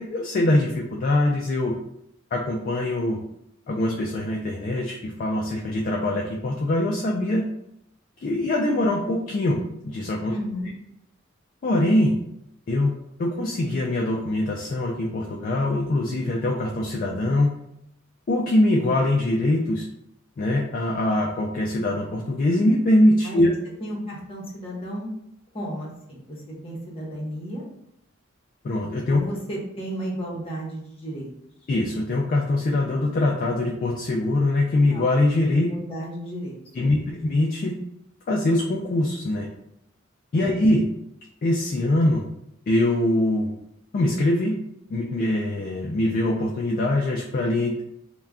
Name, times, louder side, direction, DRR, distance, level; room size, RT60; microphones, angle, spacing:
voice 1, 0.0-1.7 2.3-3.2 3.7-7.5 8.2-10.3 11.6-12.2 12.7-17.6 18.3-19.8 20.4-23.5 28.6-29.2 31.7-35.7 36.7-37.8 38.3-39.5 40.3-40.9 41.4-42.3 42.7-43.5 43.9-44.6 44.9-47.8, left 1 dB, 45° left, -1 dB, 0.3 m, -23 dB
voice 2, 10.3-10.7 23.2-23.4 23.8-25.1 25.5-26.4 26.6-27.6 29.1-31.3 34.9-35.1 35.5-36.8 40.3-40.4, equal, 30° left, -4 dB, 0.9 m, -33 dB
2.3 x 2.2 x 3.6 m, 0.76 s
head